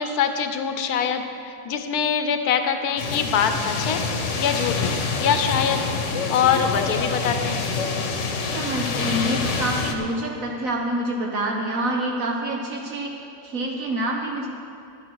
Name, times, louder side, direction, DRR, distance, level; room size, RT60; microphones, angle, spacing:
voice 1, 0.0-4.0 4.4-7.6, left 7 dB, 80° left, 7 dB, 1.3 m, -24 dB
sound 1, 3.0-9.9, left 4 dB, 55° left, 1.2 m, -26 dB
voice 2, 8.5-14.5, right 1 dB, 65° right, 0 dB, 1.3 m, -27 dB
12.0 x 10.5 x 4.7 m, 2.5 s
omnidirectional pair, 1.6 m